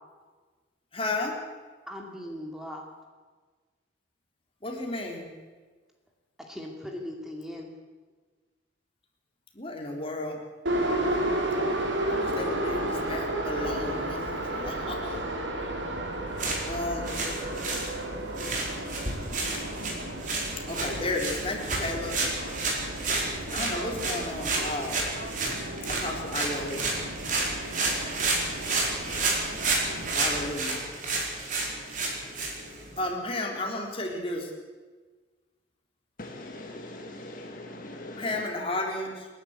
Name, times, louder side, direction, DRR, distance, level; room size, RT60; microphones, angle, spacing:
voice 1, 0.9-1.4 4.6-5.3 9.5-10.4 12.1-15.2 16.7-17.3 20.7-22.2 23.5-25.0 25.8-26.9 30.1-30.8 33.0-34.5 38.2-39.3, left 2 dB, 30° left, 1 dB, 3.7 m, -33 dB
voice 2, 1.9-2.8 6.4-7.7, left 1 dB, ahead, 1 dB, 2.5 m, -39 dB
Subway metro underground, 10.6-30.5, right 1 dB, 75° right, 4.0 m, -33 dB
sound 1, 16.3-33.1, right 3 dB, 45° right, 4.6 m, -31 dB
voice 3, 36.2-38.2, left 1 dB, 45° left, 3 dB, 1.7 m, -41 dB
29.0 x 11.0 x 8.1 m, 1.4 s
head